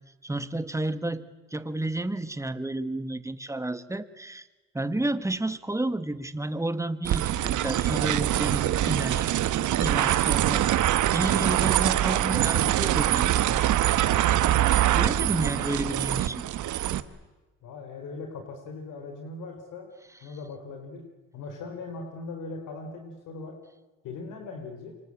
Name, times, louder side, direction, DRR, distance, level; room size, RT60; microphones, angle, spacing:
voice 1, 0.2-4.4 4.7-9.3 9.8-10.7 11.1-13.6 15.0-16.4, right 2 dB, 10° right, 12 dB, 1.6 m, -31 dB
sound 1, 7.0-17.0, right 12 dB, 75° right, 1.2 m, -24 dB
voice 2, 17.6-19.9 20.2-21.1 21.3-23.6 24.0-25.0, left 3 dB, 85° left, 5 dB, 4.1 m, -39 dB
27.5 x 24.5 x 8.7 m, 1.2 s
cardioid pair, 90°, 30 cm